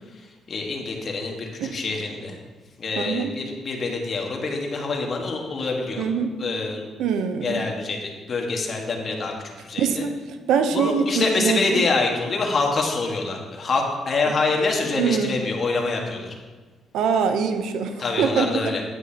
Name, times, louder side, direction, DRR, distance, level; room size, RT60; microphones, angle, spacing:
voice 1, 0.5-2.4 2.8-6.1 6.4-6.9 7.4-9.3 9.6-10.0 10.7-16.3 18.0-18.8, left 3 dB, 45° left, 1 dB, 1.5 m, -26 dB
voice 2, 3.0-3.3 6.0-6.4 7.0-7.6 9.8-10.2 10.5-11.9 15.0-15.4 16.9-18.7, right 6 dB, 85° right, 8 dB, 0.7 m, -23 dB
9.6 x 8.4 x 2.8 m, 1.3 s
cardioid pair, 90°, 0 cm